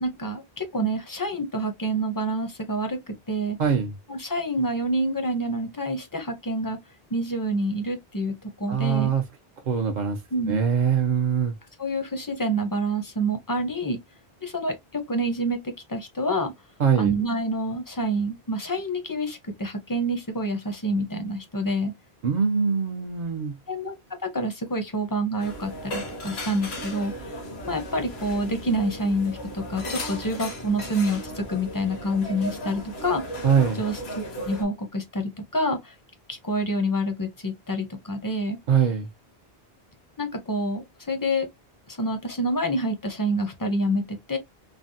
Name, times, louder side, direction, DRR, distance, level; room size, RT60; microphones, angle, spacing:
voice 1, 0.0-3.0 3.3-3.6 4.1-6.8 7.1-9.1 10.3-10.6 11.8-14.0 14.4-16.5 17.0-21.9 23.7-24.0 24.2-27.4 27.6-33.2 33.8-35.9 36.3-38.6 40.2-41.5 41.9-44.4, right 1 dB, 25° left, 0.5 m, -27 dB
voice 2, 3.6-3.9 8.7-9.2 9.7-10.2 10.5-11.5 16.8-17.1 22.2-23.5 33.4-33.8 38.7-39.1, right 7 dB, 55° right, 0.6 m, -22 dB
sound 1, 25.4-34.6, equal, 85° left, 1.2 m, -36 dB
3.2 x 2.0 x 2.5 m
omnidirectional pair, 1.0 m